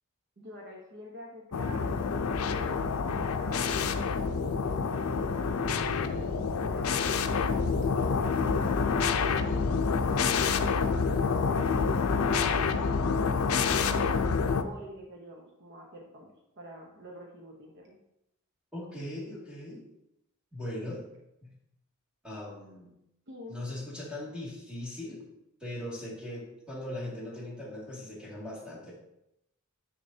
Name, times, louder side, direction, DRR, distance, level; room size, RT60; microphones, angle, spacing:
voice 1, 0.4-2.9 3.2-3.9 4.6-7.4 7.7-10.3 11.1-14.3 14.6-18.0 23.3-23.6, equal, 55° right, 0 dB, 0.9 m, -47 dB
sound 1, 1.5-14.6, left 5 dB, 85° left, 0.5 m, -27 dB
voice 2, 18.7-19.8 20.5-21.0 21.4-21.5 22.2-22.9 23.5-25.2 25.6-28.9, left 1 dB, 5° right, -6 dB, 2.1 m, -39 dB
7.4 x 6.4 x 2.7 m, 0.83 s
head